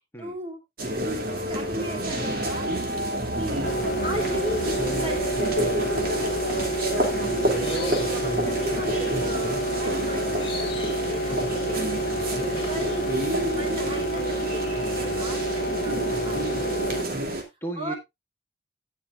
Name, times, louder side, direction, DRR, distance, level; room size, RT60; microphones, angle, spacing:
voice 1, 0.2-0.6 0.9-2.7 3.3-4.7 5.0-5.8 7.7-12.1 12.6-17.0 17.8-18.0, right 1 dB, 30° right, 3 dB, 2.6 m, -37 dB
sound 1, 0.8-17.4, right 1 dB, 55° right, 2.5 m, -28 dB
sound 2, 3.6-17.0, right 1 dB, 45° left, 0.9 m, -29 dB
voice 2, 7.0-7.3 16.0-16.3 17.6-17.9, right 2 dB, 15° left, 2 dB, 1.5 m, -36 dB
sound 3, 7.4-13.3, left 3 dB, 30° left, 3.3 m, -41 dB
17.5 x 6.3 x 2.4 m, 0.21 s
head